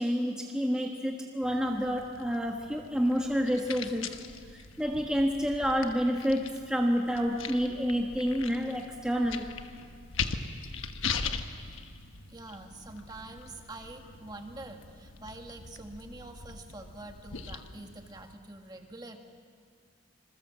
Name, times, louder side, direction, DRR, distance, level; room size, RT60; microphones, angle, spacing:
voice 1, 0.0-4.1 4.5-9.5, equal, 5° right, 0 dB, 1.3 m, -29 dB
sound 1, 1.4-18.3, left 5 dB, 85° left, 1.2 m, -41 dB
voice 2, 12.3-19.2, right 2 dB, 20° right, 4 dB, 1.6 m, -46 dB
27.0 x 21.5 x 7.5 m, 2.1 s
head